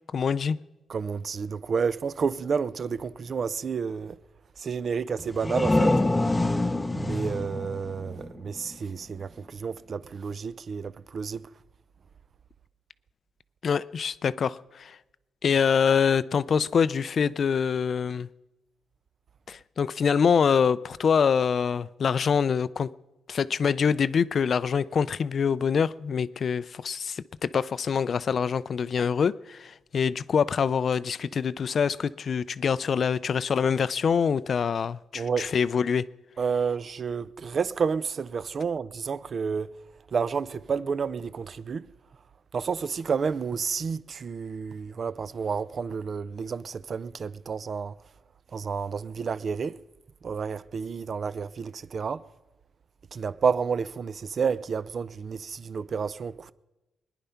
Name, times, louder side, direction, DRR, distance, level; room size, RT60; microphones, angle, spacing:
voice 1, 0.1-0.6 13.6-15.0 15.4-18.3 19.5-22.9 23.3-36.0, left 6 dB, 50° left, 0.4 m, -25 dB
voice 2, 0.9-4.2 4.6-6.0 6.9-11.5 35.1-35.5 36.4-39.7 40.1-41.9 42.5-47.9 48.5-49.8 50.2-52.2 53.1-56.5, right 6 dB, 45° right, 0.5 m, -30 dB
sound 1, 5.2-8.8, left 2 dB, 15° left, 0.7 m, -26 dB
22.0 x 10.5 x 5.7 m
cardioid pair, 105°, 0 cm